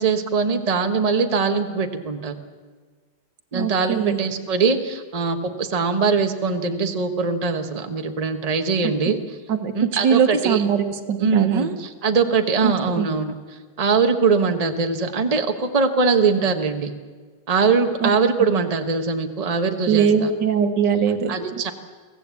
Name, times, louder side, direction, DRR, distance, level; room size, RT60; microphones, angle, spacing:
voice 1, 0.0-2.4 3.5-9.2 9.7-10.6 11.2-13.4 13.8-16.9 17.5-20.3 21.3-21.7, right 5 dB, 25° right, 6 dB, 1.2 m, -22 dB
voice 2, 3.5-4.2 8.8-8.9 9.5-11.7 12.6-13.1 18.0-18.1 19.9-21.6, right 7 dB, 80° right, 8 dB, 2.0 m, -21 dB
23.0 x 16.5 x 8.3 m, 1.5 s
omnidirectional pair, 1.9 m